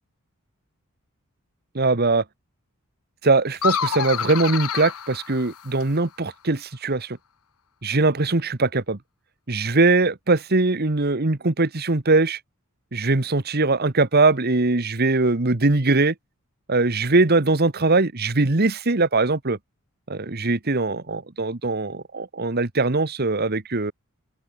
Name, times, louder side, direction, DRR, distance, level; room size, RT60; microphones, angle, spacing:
voice 1, 1.8-2.2 3.2-7.2 7.8-9.0 9.5-12.4 12.9-16.1 16.7-19.6 20.1-23.9, right 3 dB, 45° right, 1.4 m, -21 dB
sound 1, 3.5-6.0, left 8 dB, 80° left, 1.0 m, -28 dB
open air
head